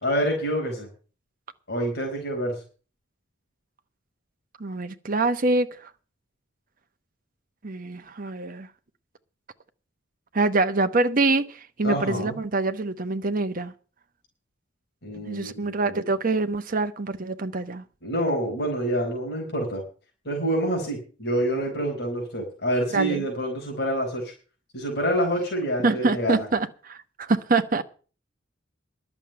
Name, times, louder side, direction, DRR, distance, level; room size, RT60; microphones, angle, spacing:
voice 1, 0.0-0.9 1.7-2.6 11.8-12.3 15.0-16.0 18.0-19.8 20.2-24.3 24.7-26.5, equal, 60° left, 4.5 m, -27 dB
voice 2, 4.6-5.9 7.6-8.7 10.3-13.7 15.3-17.8 22.9-23.3 25.8-27.8, right 3 dB, 45° right, 1.0 m, -25 dB
11.5 x 7.1 x 8.8 m
head